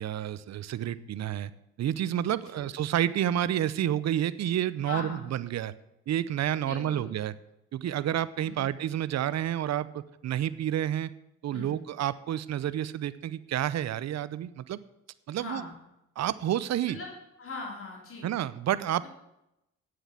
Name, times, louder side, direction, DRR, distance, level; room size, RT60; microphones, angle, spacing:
voice 1, 0.0-1.5 1.8-5.7 6.1-7.3 7.7-11.1 11.4-14.8 15.3-15.6 16.2-17.0 18.2-19.1, right 11 dB, 60° right, 16 dB, 0.7 m, -29 dB
voice 2, 4.8-5.3 6.6-7.1 8.4-8.8 11.5-11.8 15.3-15.7 16.9-17.1 17.4-18.3 19.0-19.1, left 3 dB, 45° left, -2 dB, 3.7 m, -40 dB
9.5 x 7.9 x 8.2 m, 0.88 s
cardioid pair, 90°, 30 cm